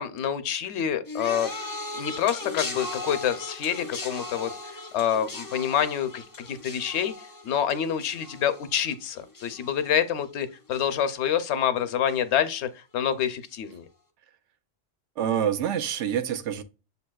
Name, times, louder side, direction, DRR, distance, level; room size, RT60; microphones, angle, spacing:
voice 1, 0.0-1.5 1.9-4.5 4.9-13.9, left 9 dB, 75° left, 0.8 m, -27 dB
sound 1, 1.1-10.4 10.7-11.2 12.1-12.2, left 2 dB, 25° left, 0.4 m, -38 dB
voice 2, 15.2-16.6, right 9 dB, 80° right, 0.9 m, -26 dB
6.9 x 2.7 x 2.2 m
omnidirectional pair, 1.2 m